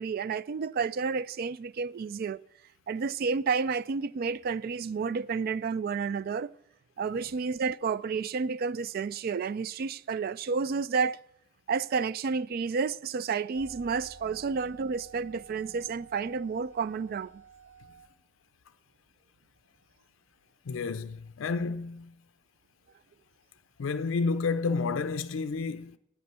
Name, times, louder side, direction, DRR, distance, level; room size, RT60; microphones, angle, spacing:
voice 1, 0.0-2.4 2.9-6.5 7.0-11.2 11.7-17.3, right 5 dB, 50° right, 0.3 m, -30 dB
sound 1, 13.5-18.1, right 5 dB, 75° right, 1.8 m, -51 dB
voice 2, 20.7-22.1 23.8-26.0, left 4 dB, 85° left, 0.4 m, -30 dB
9.6 x 8.6 x 6.6 m
head